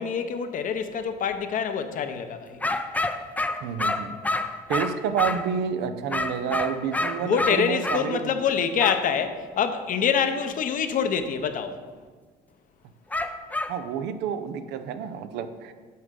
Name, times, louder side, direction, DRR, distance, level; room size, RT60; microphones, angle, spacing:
voice 1, 0.0-2.6 7.2-11.8, left 7 dB, 50° left, 8 dB, 0.8 m, -26 dB
sound 1, 2.6-5.5 6.1-8.1 8.8-9.0 13.1-13.8, left 2 dB, 10° left, 0.5 m, -28 dB
voice 2, 3.6-4.1 4.7-8.3 13.7-15.7, right 7 dB, 85° right, 10 dB, 0.6 m, -29 dB
9.8 x 6.5 x 3.7 m, 1.5 s
cardioid pair, 110°, 17 cm